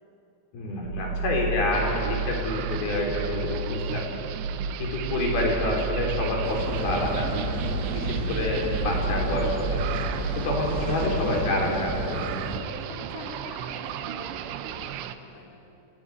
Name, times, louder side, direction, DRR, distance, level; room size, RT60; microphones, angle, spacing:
voice 1, 0.5-4.1 4.8-7.3 7.9-9.8 10.4-12.2, left 2 dB, 60° left, 0 dB, 5.7 m, -28 dB
sound 1, 0.8-12.0, right 3 dB, 70° right, 2.2 m, -32 dB
sound 2, 1.7-15.2, right 10 dB, 85° right, 3.2 m, -36 dB
sound 3, 6.4-12.6, right 2 dB, 40° right, 1.3 m, -32 dB
voice 2, 12.8-15.6, left 2 dB, 35° left, -1 dB, 4.3 m, -45 dB
29.0 x 18.0 x 9.8 m, 3.0 s
omnidirectional pair, 4.9 m